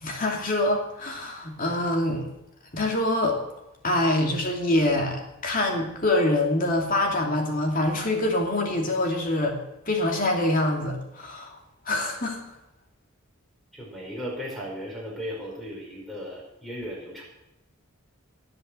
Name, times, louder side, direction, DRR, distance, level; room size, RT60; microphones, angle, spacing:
voice 1, 0.0-2.3 2.7-3.4 3.8-9.6 9.8-11.6 11.9-12.4, left 1 dB, 35° left, 2 dB, 2.8 m, -25 dB
voice 2, 13.7-17.2, equal, ahead, -3 dB, 5.2 m, -36 dB
18.5 x 7.8 x 7.8 m, 0.87 s
head